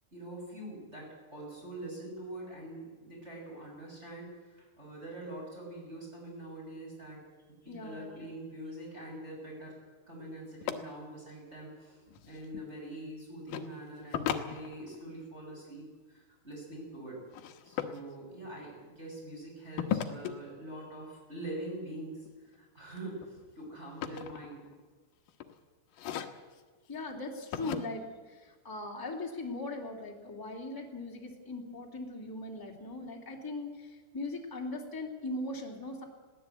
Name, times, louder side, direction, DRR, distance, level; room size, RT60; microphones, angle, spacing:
voice 1, 0.1-7.2 7.6-9.7 10.1-17.2 17.6-24.7, right 1 dB, 15° right, -2 dB, 6.8 m, -44 dB
voice 2, 7.7-8.3 26.9-36.0, left 2 dB, 10° left, 0 dB, 0.9 m, -40 dB
sound 1, 10.6-10.7 12.1-12.6 13.5-13.7 14.1-15.1 17.3-18.0 19.8-20.3 22.2-22.6 23.0-24.9 25.3-25.5 25.9-26.6 27.5-27.8, left 10 dB, 90° left, 1.8 m, -36 dB
21.5 x 16.0 x 8.3 m, 1.4 s
omnidirectional pair, 5.5 m